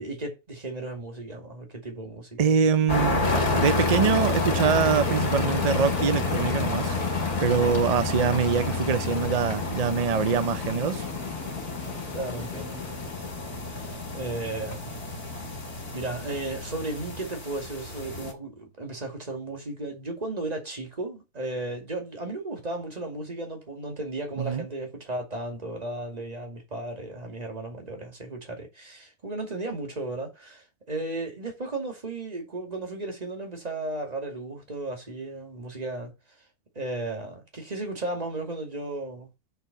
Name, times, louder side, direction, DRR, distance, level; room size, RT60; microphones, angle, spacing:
voice 1, 0.0-2.6 11.8-13.5 13.8-14.9 15.9-36.1 36.7-39.3, right 2 dB, 25° right, 2.4 m, -35 dB
voice 2, 2.4-3.2 3.5-7.0 7.4-11.1 24.4-24.6, right 6 dB, 55° right, 0.4 m, -24 dB
sound 1, 2.9-18.3, left 1 dB, 45° left, 2.6 m, -32 dB
sound 2, 3.2-17.4, left 5 dB, 70° left, 1.8 m, -31 dB
6.8 x 4.4 x 6.6 m
omnidirectional pair, 1.5 m